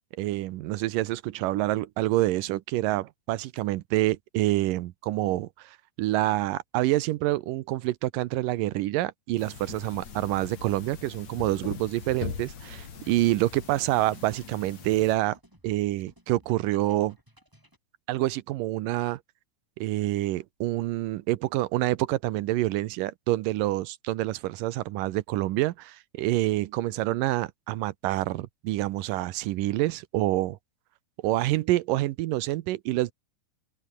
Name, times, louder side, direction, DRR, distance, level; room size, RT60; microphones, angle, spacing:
voice 1, 0.2-15.4 15.6-17.2 18.1-19.2 19.8-30.6 31.2-33.1, right 16 dB, 75° right, 2.3 m, -27 dB
sound 1, 9.4-15.2, left 6 dB, 50° left, 4.3 m, -41 dB
sound 2, 12.8-17.8, equal, 5° right, 7.6 m, -59 dB
open air
omnidirectional pair, 4.3 m